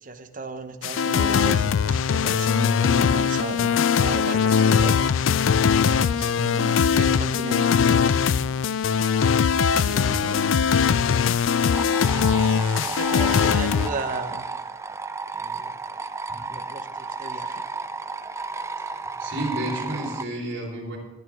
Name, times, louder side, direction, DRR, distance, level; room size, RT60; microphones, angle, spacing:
voice 1, 0.0-5.1 5.4-7.8 12.3-14.4 15.3-15.8 16.5-17.6, right 2 dB, 45° right, 7 dB, 1.1 m, -35 dB
sound 1, 0.8-13.9, left 6 dB, 70° left, 0.4 m, -21 dB
sound 2, 9.1-14.7, left 3 dB, 45° left, 5.1 m, -45 dB
voice 2, 9.7-10.4 13.2-13.3 16.3-16.5 19.2-21.0, right 1 dB, 65° right, -4 dB, 4.1 m, -32 dB
sound 3, 11.7-20.2, right 4 dB, 15° right, 0.4 m, -33 dB
21.5 x 9.2 x 3.6 m, 1.2 s
head